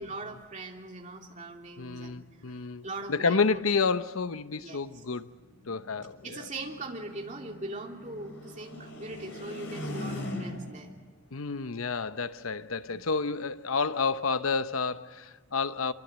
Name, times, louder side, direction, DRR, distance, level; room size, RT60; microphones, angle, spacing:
voice 1, 0.0-2.2 2.5-3.7 4.6-5.0 6.2-10.9 12.9-13.0, right 2 dB, 35° right, 3.0 m, -41 dB
voice 2, 1.8-5.3 5.7-6.5 11.3-15.9, left 4 dB, 80° left, 0.8 m, -30 dB
sound 1, 5.4-10.9, left 1 dB, 60° left, 4.8 m, -40 dB
27.0 x 23.5 x 8.1 m
head